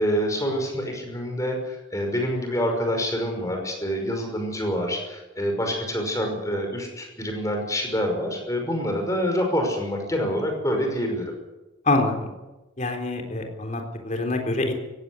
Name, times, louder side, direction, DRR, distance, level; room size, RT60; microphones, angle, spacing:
voice 1, 0.0-11.3, equal, 15° left, 3 dB, 5.6 m, -26 dB
voice 2, 12.8-14.7, left 2 dB, 35° left, 3 dB, 3.7 m, -25 dB
17.5 x 16.0 x 9.7 m, 1.1 s
head